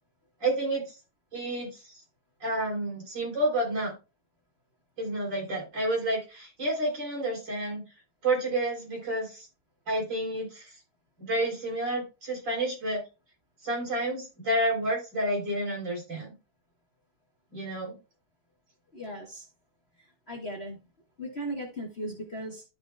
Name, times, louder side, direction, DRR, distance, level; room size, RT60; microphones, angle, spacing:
voice 1, 0.4-0.8 1.3-1.7 2.4-3.9 5.0-7.8 8.2-9.5 9.9-10.6 11.2-13.0 13.6-16.3 17.5-18.0, right 1 dB, 55° right, 4.7 m, -29 dB
voice 2, 18.9-19.4 20.3-20.8 21.2-22.6, equal, 30° left, 1.6 m, -37 dB
13.0 x 4.9 x 2.2 m
omnidirectional pair, 2.4 m